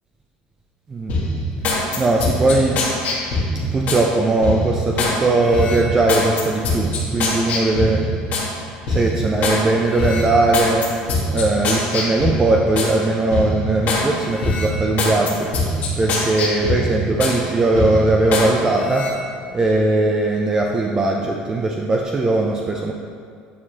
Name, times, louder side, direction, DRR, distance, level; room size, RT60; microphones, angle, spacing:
sound 1, 1.1-4.0 4.4-5.2 5.5-8.5 8.9-9.6 9.9-12.9 13.3-14.0 14.4-17.4 17.7-18.5 18.8-19.1, left 2 dB, 50° left, 1.5 m, -23 dB
voice 1, 2.0-2.8 3.6-8.0 8.9-10.9 11.3-19.1 19.5-22.9, right 2 dB, 20° right, 0 dB, 0.5 m, -19 dB
8.1 x 4.6 x 2.9 m, 2.3 s
supercardioid pair, 115°, 3 cm